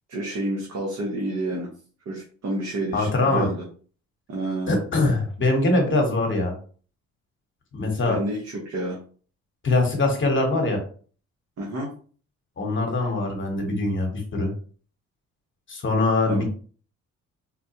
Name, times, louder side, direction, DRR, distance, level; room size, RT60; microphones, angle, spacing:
voice 1, 0.1-1.7 2.0-3.6 4.3-4.7 8.1-9.0 11.6-11.9 16.2-16.4, right 1 dB, 55° right, -3 dB, 1.2 m, -29 dB
voice 2, 2.9-3.5 4.7-6.5 7.7-8.2 9.6-10.8 12.6-14.5 15.7-16.4, left 2 dB, 40° left, 2 dB, 1.2 m, -22 dB
4.3 x 2.2 x 2.9 m, 0.42 s
cardioid pair, 90°, 30 cm